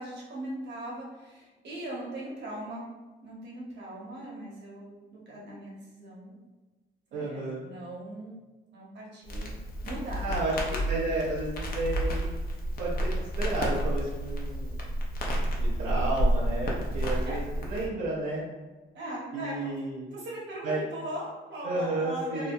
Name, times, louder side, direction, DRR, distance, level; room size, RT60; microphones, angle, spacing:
voice 1, 0.0-2.9 3.2-6.4 7.1-8.4 8.7-9.6 9.8-10.4 17.3-17.4 18.9-19.8 20.1-22.5, right 1 dB, 60° right, -4 dB, 1.0 m, -39 dB
voice 2, 7.1-7.6 10.2-12.3 12.8-14.8 15.2-18.4 19.3-20.0 20.6-20.8 21.6-22.5, right 2 dB, 85° right, -7 dB, 0.6 m, -32 dB
Crackle, 9.2-17.9, equal, 50° left, 0.6 m, -30 dB
2.7 x 2.1 x 2.6 m, 1.2 s
cardioid pair, 90°, 20 cm